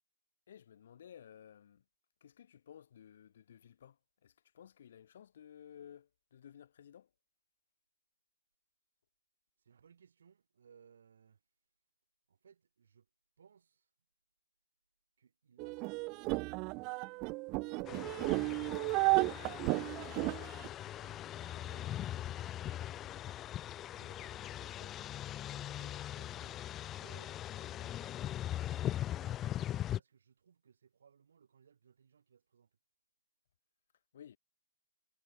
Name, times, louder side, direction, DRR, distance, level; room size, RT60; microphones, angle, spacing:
voice 1, 0.5-1.8 2.2-4.0 4.2-7.1 34.1-34.4, left 9 dB, 55° left, 2.0 m, -55 dB
voice 2, 9.6-11.4 12.3-13.1 13.4-13.9 15.2-17.1 17.6-18.1 19.1-20.4 20.7-23.3 23.8-25.0 25.4-28.4 29.2-32.7, right 7 dB, 65° right, 7.7 m, -65 dB
sound 1, 15.6-20.7, right 28 dB, 30° right, 0.4 m, -33 dB
sound 2, 17.8-30.0, left 12 dB, 20° left, 1.0 m, -40 dB
figure-of-eight pair, 135°, 0 cm